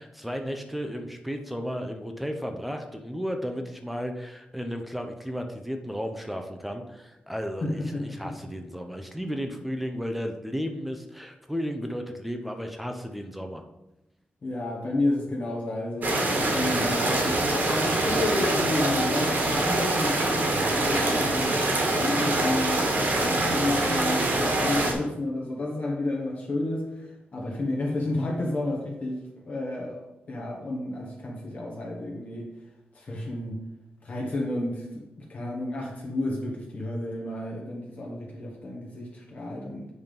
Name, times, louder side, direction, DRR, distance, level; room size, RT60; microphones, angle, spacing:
voice 1, 0.0-13.6, equal, 5° right, 5 dB, 0.6 m, -34 dB
voice 2, 7.6-8.3 14.4-32.5 32.9-33.6 34.0-35.0 35.3-39.9, left 2 dB, 40° left, -2 dB, 1.5 m, -31 dB
sound 1, 16.0-24.9, right 2 dB, 55° right, 1.6 m, -24 dB
8.3 x 3.6 x 5.2 m, 0.92 s
wide cardioid pair, 125°, 4 cm